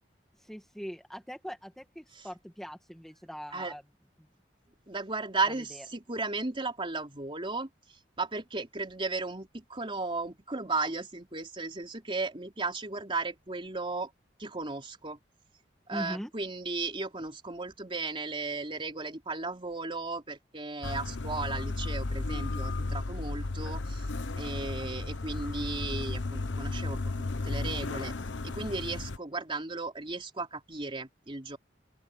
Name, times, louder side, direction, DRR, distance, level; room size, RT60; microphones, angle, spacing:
voice 1, 0.4-3.8 5.7-5.9 15.9-16.3, equal, ahead, 1.9 m, -41 dB
voice 2, 4.9-7.7 8.2-14.1 14.4-15.2 15.9-24.1 24.3-28.1 28.4-31.6, right 3 dB, 30° right, 3.7 m, -35 dB
sound 1, 20.8-29.2, left 2 dB, 80° left, 1.1 m, -34 dB
open air
head